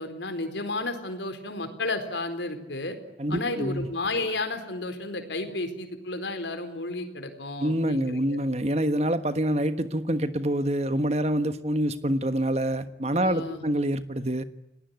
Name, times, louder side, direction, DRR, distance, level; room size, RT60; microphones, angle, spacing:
voice 1, 0.0-3.0 3.3-8.4 13.2-13.6, left 2 dB, 80° left, 7 dB, 4.2 m, -32 dB
voice 2, 3.2-3.9 7.6-14.4, right 1 dB, 35° right, 11 dB, 1.4 m, -26 dB
29.0 x 19.0 x 9.4 m, 0.92 s
head